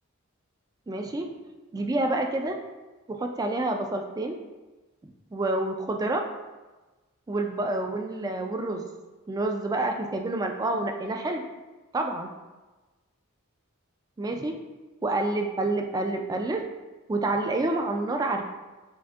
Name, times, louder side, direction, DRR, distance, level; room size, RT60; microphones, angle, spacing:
voice 1, 0.9-1.3 1.7-2.5 3.1-4.4 5.0-6.2 7.3-8.8 9.3-11.4 11.9-12.3 14.2-14.6 15.0-16.6 17.1-18.4, right 2 dB, 20° right, 3 dB, 0.3 m, -28 dB
5.8 x 2.6 x 2.4 m, 1.2 s
head